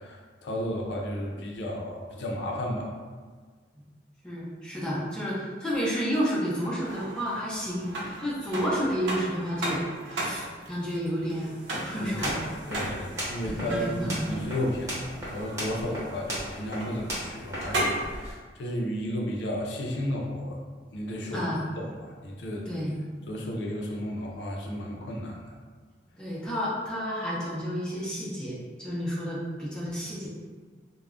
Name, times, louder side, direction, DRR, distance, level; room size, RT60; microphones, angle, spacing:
voice 1, 0.0-2.9 11.9-12.3 12.7-20.6 20.9-21.5 21.8-22.7 23.3-25.5, equal, 80° left, -1 dB, 0.5 m, -33 dB
voice 2, 4.2-9.8 10.1-11.5 11.8-12.5 13.4-14.3 21.3-21.6 22.7-23.0 26.2-30.3, equal, 5° left, -8 dB, 0.6 m, -31 dB
sound 1, 6.6-18.2, right 1 dB, 90° right, 0.6 m, -36 dB
sound 2, 12.0-18.3, equal, 15° right, 0.9 m, -37 dB
2.3 x 2.1 x 3.5 m, 1.5 s
head